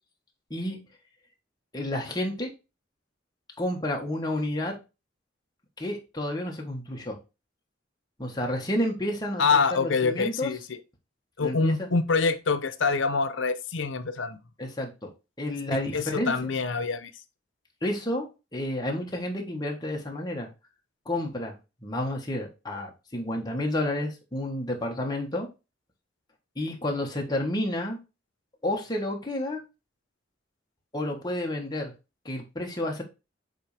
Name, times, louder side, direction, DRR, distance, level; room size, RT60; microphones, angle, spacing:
voice 1, 1.7-2.5 3.6-4.7 5.8-7.2 8.2-10.5 11.4-11.9 14.6-15.1 15.4-16.3 17.8-18.2 18.5-20.5 21.0-21.6 21.8-25.5 26.5-28.0 28.6-29.6 30.9-31.9 32.2-33.0, left 1 dB, 20° left, 1.5 m, -30 dB
voice 2, 9.4-10.8 11.4-14.4 15.7-17.1, left 4 dB, 85° left, 0.7 m, -26 dB
7.9 x 3.6 x 3.3 m
head